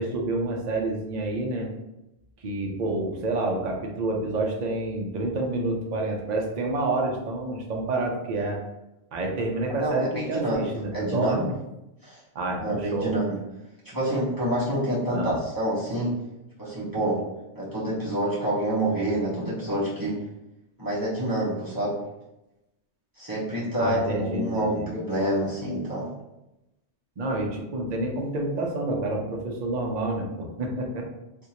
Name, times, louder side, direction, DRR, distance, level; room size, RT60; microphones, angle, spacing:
voice 1, 0.0-1.7 2.4-8.6 9.1-11.5 12.3-13.2 15.1-15.4 16.6-16.7 19.6-19.7 23.8-24.9 27.2-31.1, right 2 dB, 45° right, 0 dB, 0.6 m, -28 dB
voice 2, 9.7-11.4 12.0-12.2 12.6-13.4 13.8-16.2 16.6-17.2 17.5-20.2 20.8-22.0 23.2-26.1, right 1 dB, 20° right, -10 dB, 1.0 m, -27 dB
3.6 x 2.5 x 2.8 m, 0.93 s
omnidirectional pair, 1.2 m